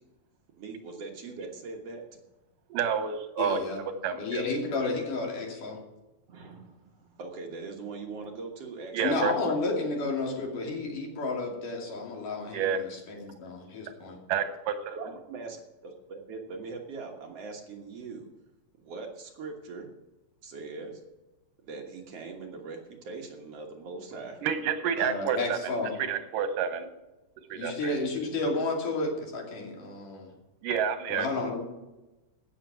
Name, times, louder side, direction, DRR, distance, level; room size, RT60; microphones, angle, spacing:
voice 1, 0.5-2.0 6.3-9.3 15.0-18.3 18.8-19.9 20.4-21.0 21.6-24.4 28.3-28.4, right 4 dB, 55° right, 1 dB, 2.2 m, -41 dB
voice 2, 2.7-3.6 4.0-4.4 8.9-9.3 12.5-12.8 14.3-15.0 24.4-25.7 26.1-26.9 27.5-27.7 30.6-31.3, right 7 dB, 85° right, 9 dB, 2.7 m, -29 dB
voice 3, 3.4-3.8 4.2-5.8 9.0-14.2 25.0-25.9 27.5-30.3 31.1-31.6, left 3 dB, 75° left, 0 dB, 4.2 m, -31 dB
16.0 x 6.7 x 6.1 m, 1.1 s
omnidirectional pair, 3.7 m